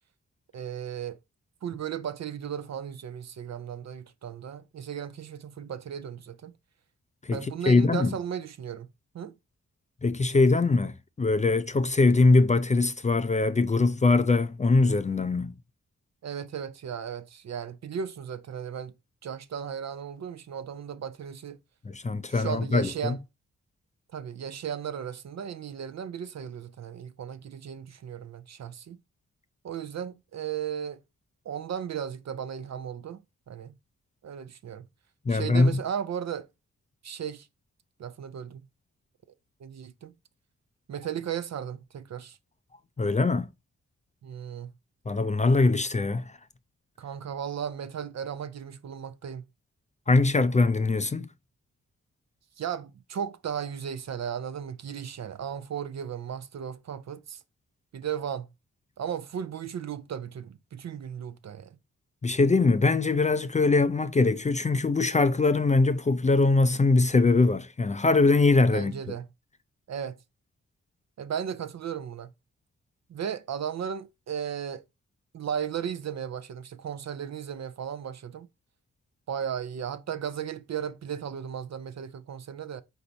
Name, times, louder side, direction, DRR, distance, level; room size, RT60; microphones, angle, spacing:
voice 1, 0.5-1.2 1.6-6.5 7.3-8.9 9.1-9.3 16.2-18.9 19.2-21.6 22.3-23.2 24.1-29.0 29.6-31.0 31.5-33.8 34.2-34.9 35.3-36.5 37.0-37.5 38.0-38.7 39.6-40.1 40.9-42.4 44.2-44.7 47.0-49.4 52.6-57.4 57.9-58.5 59.0-61.8 68.7-69.3 69.9-70.2 71.2-72.3 73.1-74.8 75.3-78.5 79.3-82.8, right 8 dB, 55° right, 0.5 m, -35 dB
voice 2, 7.7-8.2 10.0-15.6 21.8-23.2 35.3-35.8 43.0-43.5 45.1-46.3 50.1-51.3 62.2-68.9, left 3 dB, 20° left, 0.4 m, -22 dB
4.0 x 2.7 x 4.5 m
supercardioid pair, 45°, 33 cm